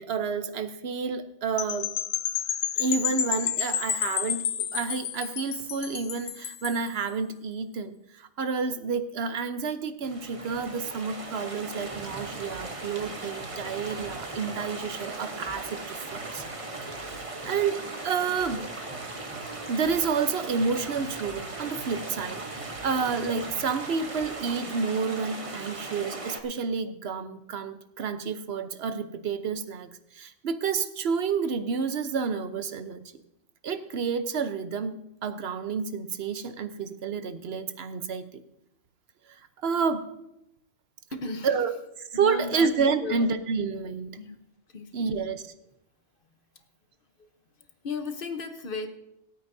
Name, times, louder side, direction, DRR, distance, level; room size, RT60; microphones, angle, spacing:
voice 1, 0.0-1.9 2.8-16.4 17.0-17.8 18.0-18.6 19.7-29.9 30.1-33.0 33.6-38.2 39.6-40.1 41.4-44.2 44.9-45.4, right 5 dB, 60° right, 10 dB, 1.0 m, -30 dB
sound 1, 1.6-6.9, left 10 dB, 70° left, 0.8 m, -30 dB
sound 2, 10.0-26.4, right 2 dB, 30° right, 1.1 m, -38 dB
sound 3, 12.3-24.3, right 2 dB, ahead, 4.0 m, -50 dB
voice 2, 41.1-41.6 42.1-42.7 43.0-43.3 44.2-44.4 44.7-45.1 46.2-46.6 47.2-47.3 47.6-48.9, left 4 dB, 50° left, 7 dB, 1.1 m, -36 dB
26.5 x 9.0 x 2.7 m, 0.84 s
omnidirectional pair, 1.3 m